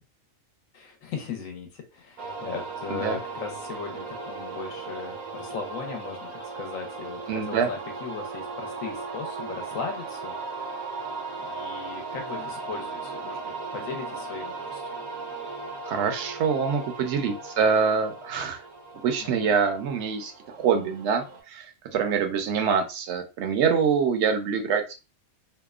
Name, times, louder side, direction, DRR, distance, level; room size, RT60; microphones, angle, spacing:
voice 1, 0.7-10.3 11.4-15.0 19.2-19.5, left 5 dB, 75° left, 3 dB, 1.0 m, -38 dB
sound 1, 2.2-21.4, right 4 dB, 80° right, 1.1 m, -37 dB
voice 2, 7.3-7.7 15.8-18.6 19.0-20.3 20.6-21.7 21.9-24.9, right 6 dB, 65° right, 5 dB, 0.7 m, -25 dB
2.8 x 2.1 x 2.3 m, 0.29 s
omnidirectional pair, 1.5 m